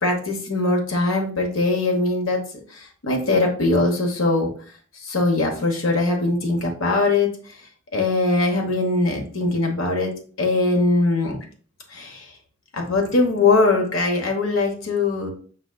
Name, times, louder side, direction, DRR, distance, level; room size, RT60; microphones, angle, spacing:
voice 1, 0.0-2.4 2.7-4.5 5.0-7.3 7.9-10.1 10.4-11.4 11.9-12.3 12.7-15.3, left 2 dB, 80° left, 1 dB, 0.9 m, -21 dB
5.4 x 3.8 x 2.2 m, 0.44 s
head